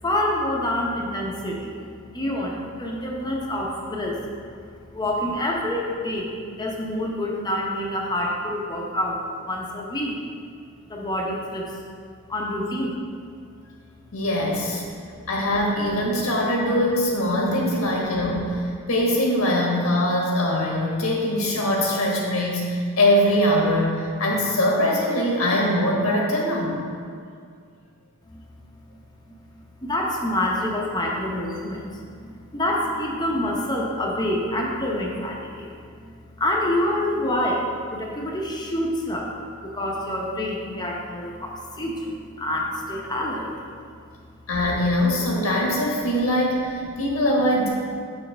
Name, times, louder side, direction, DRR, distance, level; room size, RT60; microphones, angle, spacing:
voice 1, 0.0-4.5 4.9-6.3 6.6-10.2 10.9-11.7 12.3-13.0 14.9-15.1 28.3-28.4 28.8-29.0 29.3-39.3 39.6-43.5, left 1 dB, 20° left, -1 dB, 0.8 m, -27 dB
voice 2, 14.1-14.8 15.3-18.6 18.9-26.8 44.5-47.7, left 1 dB, 85° left, -2 dB, 1.5 m, -22 dB
6.5 x 6.3 x 3.3 m, 2.2 s
head